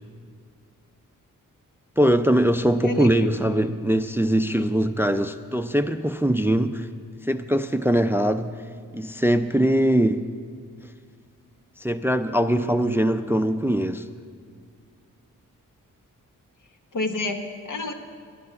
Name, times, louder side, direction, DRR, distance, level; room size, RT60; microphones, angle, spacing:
voice 1, 2.0-6.9 7.3-8.5 8.9-10.3 11.8-14.1, right 1 dB, 5° right, 10 dB, 0.4 m, -22 dB
voice 2, 2.8-3.3 16.9-17.9, left 2 dB, 65° left, 5 dB, 1.1 m, -29 dB
10.5 x 9.4 x 6.5 m, 2.1 s
cardioid pair, 50°, 33 cm